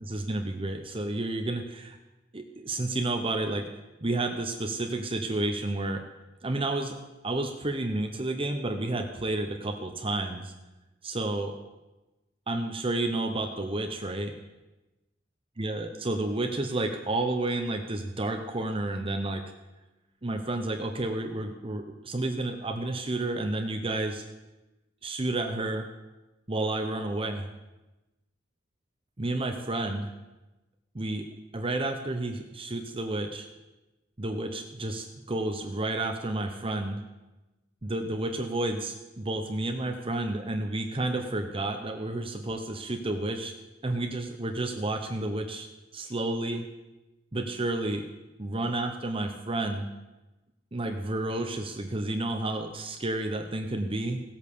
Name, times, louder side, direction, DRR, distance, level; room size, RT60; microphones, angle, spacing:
voice 1, 0.0-2.0 2.3-3.7 4.0-6.1 6.4-7.0 7.2-10.5 11.0-11.5 12.5-14.4 15.6-19.4 20.2-24.2 25.0-25.8 26.5-27.5 29.2-30.1 30.9-31.3 31.5-33.5 34.2-37.0 37.8-43.5 43.8-45.7 45.9-46.7 47.3-48.0 48.4-49.9 50.7-54.2, right 2 dB, 30° right, 4 dB, 0.9 m, -31 dB
16.5 x 8.5 x 6.9 m, 1.1 s
head